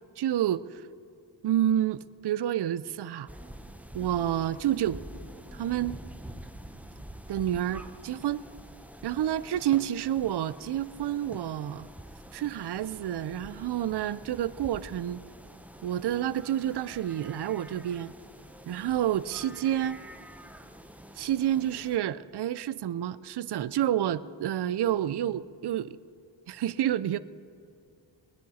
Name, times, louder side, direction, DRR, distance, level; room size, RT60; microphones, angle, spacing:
voice 1, 0.2-0.8 1.4-3.3 3.9-5.0 5.5-6.0 7.3-8.4 9.0-11.9 12.3-15.2 15.8-18.1 18.7-20.0 21.2-26.0 26.5-27.2, right 11 dB, 60° right, 16 dB, 0.5 m, -29 dB
sound 1, 3.3-22.0, right 1 dB, 5° right, 0.7 m, -47 dB
20.0 x 10.5 x 4.2 m, 2.4 s
cardioid pair, 75°, 46 cm